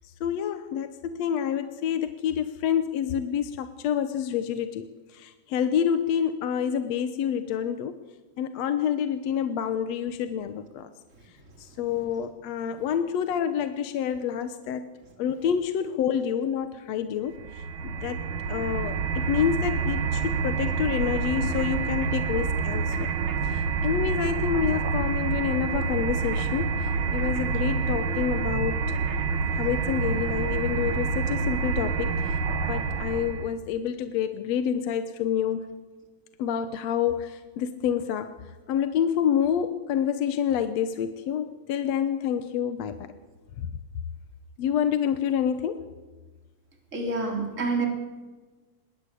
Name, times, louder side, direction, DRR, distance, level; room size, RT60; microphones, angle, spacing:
voice 1, 0.2-8.0 8.4-10.9 11.6-14.9 15.2-18.2 18.5-23.1 23.4-29.0 29.5-32.4 32.7-35.7 36.4-38.3 38.7-43.1 43.6-43.7 44.6-45.9, left 8 dB, 65° left, 9 dB, 2.0 m, -28 dB
sound 1, 17.3-33.5, right 5 dB, 55° right, 1.6 m, -27 dB
voice 2, 46.9-47.9, right 3 dB, 25° right, 2 dB, 3.9 m, -27 dB
25.0 x 22.0 x 8.4 m, 1.3 s
omnidirectional pair, 3.5 m